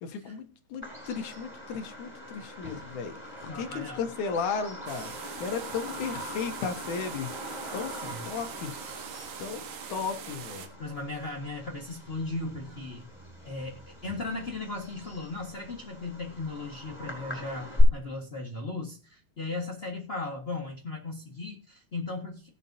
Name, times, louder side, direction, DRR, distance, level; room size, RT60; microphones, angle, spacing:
voice 1, 0.0-7.3 7.7-7.9 8.3-8.7 9.4-9.6 9.9-10.7, left 6 dB, 65° left, 6 dB, 2.3 m, -35 dB
Bird vocalization bird call bird song, 0.8-17.8, left 2 dB, 5° right, 4.9 m, -39 dB
voice 2, 3.2-4.0 7.9-8.3 9.7-9.9 10.8-13.1 13.4-22.5, left 3 dB, 85° left, -1 dB, 0.5 m, -37 dB
sound 1, 4.9-10.7, right 8 dB, 75° right, 3.0 m, -43 dB
19.5 x 7.1 x 2.7 m, 0.34 s
omnidirectional pair, 4.2 m